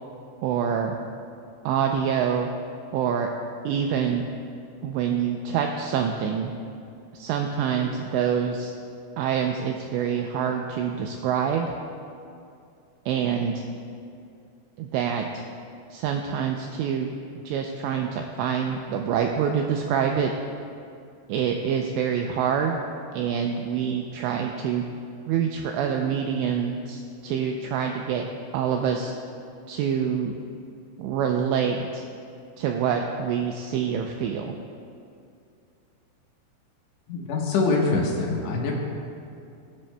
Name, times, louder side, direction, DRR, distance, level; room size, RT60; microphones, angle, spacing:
voice 1, 0.4-1.0 1.7-2.5 2.9-3.3 3.6-4.2 4.8-6.5 7.1-8.7 9.2-11.7 13.1-13.6 14.8-15.4 15.9-17.1 17.4-20.3 21.3-22.8 23.1-24.8 25.3-28.3 28.5-29.1 29.7-30.4 31.0-32.0 32.6-34.6, right 7 dB, 90° right, 3 dB, 2.5 m, -26 dB
voice 2, 37.1-38.7, left 3 dB, 70° left, -2 dB, 3.2 m, -24 dB
21.0 x 10.0 x 2.2 m, 2.5 s
omnidirectional pair, 5.7 m